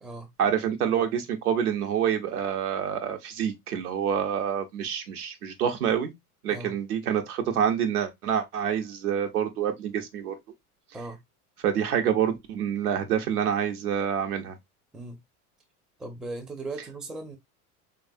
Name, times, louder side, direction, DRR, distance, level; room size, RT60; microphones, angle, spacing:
voice 1, 0.4-6.1 6.4-10.3 11.6-14.6, right 8 dB, 80° right, 0.9 m, -27 dB
voice 2, 16.0-17.4, right 2 dB, ahead, 0.4 m, -37 dB
3.3 x 2.4 x 2.5 m
hypercardioid pair, 85°, 45 cm